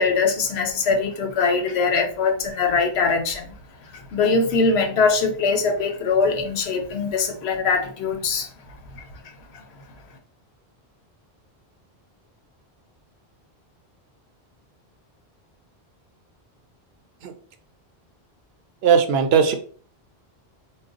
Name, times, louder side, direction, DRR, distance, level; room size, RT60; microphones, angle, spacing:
voice 1, 0.0-3.5 3.9-8.5 8.9-9.0 9.5-9.6, left 4 dB, 85° left, 5 dB, 0.9 m, -22 dB
voice 2, 18.8-19.5, right 7 dB, 75° right, 6 dB, 0.8 m, -18 dB
2.5 x 2.2 x 3.6 m, 0.43 s
omnidirectional pair, 1.1 m